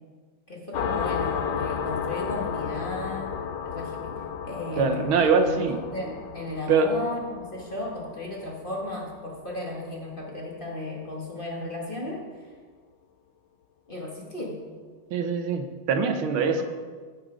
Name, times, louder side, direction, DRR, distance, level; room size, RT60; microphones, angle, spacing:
voice 1, 0.5-3.3 3.6-12.5 13.9-14.6 16.6-16.7, left 2 dB, 25° left, -2 dB, 1.5 m, -35 dB
sound 1, 0.7-10.0, left 7 dB, 75° left, 1.5 m, -33 dB
voice 2, 4.8-5.8 6.7-6.9 15.1-16.6, right 5 dB, 75° right, 7 dB, 1.7 m, -23 dB
16.0 x 6.3 x 5.0 m, 1.5 s
omnidirectional pair, 2.3 m